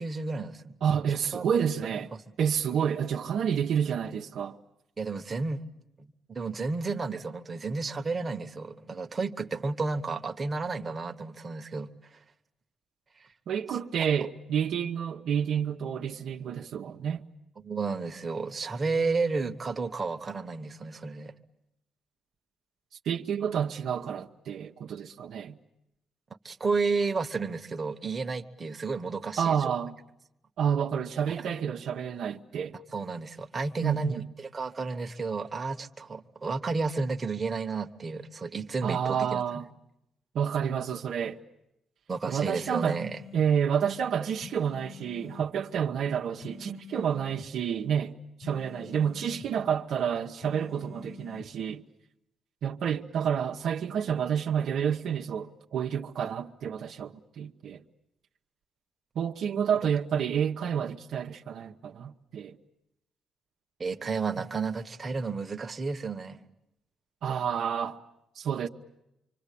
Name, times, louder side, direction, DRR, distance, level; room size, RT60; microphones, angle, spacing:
voice 1, 0.0-0.8 1.3-1.5 5.0-5.7 6.0-11.9 13.2-13.3 17.6-21.3 26.4-29.7 31.3-31.5 32.9-39.6 42.1-43.2 59.8-59.9 63.8-66.4, right 4 dB, 30° right, 1.2 m, -32 dB
voice 2, 0.8-2.1 2.4-4.6 13.5-17.2 23.0-25.6 29.4-29.9 30.6-32.8 33.8-34.2 38.8-39.7 40.3-41.4 42.3-43.0 43.3-48.1 48.4-51.8 52.6-57.8 59.1-62.6 67.2-68.0 68.4-68.7, right 8 dB, 70° right, 1.0 m, -29 dB
sound 1, 42.4-43.5 44.4-45.5 46.4-47.5 48.4-49.5 50.4-51.5, left 7 dB, 40° left, 1.3 m, -47 dB
25.5 x 25.0 x 8.5 m
cardioid pair, 90°, 0 cm